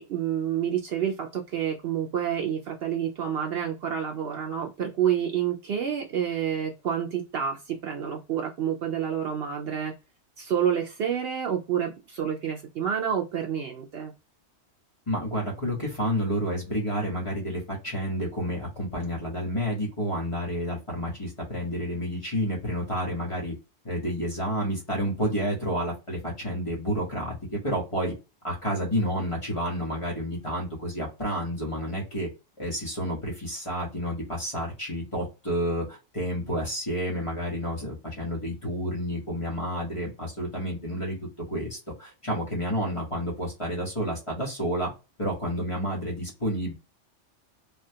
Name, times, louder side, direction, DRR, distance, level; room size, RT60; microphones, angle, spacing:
voice 1, 0.0-9.9 10.4-14.1, right 9 dB, 65° right, 2 dB, 0.7 m, -28 dB
voice 2, 15.1-23.5 23.8-28.1 28.4-32.3 32.6-41.1 41.5-44.9 45.2-46.7, equal, 25° left, -3 dB, 1.1 m, -30 dB
3.3 x 2.3 x 2.7 m, 0.28 s
omnidirectional pair, 1.3 m